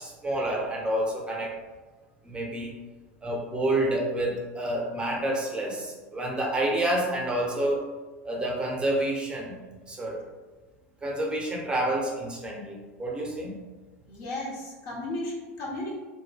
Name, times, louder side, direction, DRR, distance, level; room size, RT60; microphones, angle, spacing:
voice 1, 0.0-1.6 2.2-2.8 3.2-7.8 8.2-9.6 9.9-10.2 11.0-13.5, right 1 dB, 15° right, -1 dB, 0.7 m, -28 dB
voice 2, 14.1-16.0, left 1 dB, 55° left, -4 dB, 0.9 m, -34 dB
2.2 x 2.1 x 3.3 m, 1.3 s
hypercardioid pair, 90°, 7 cm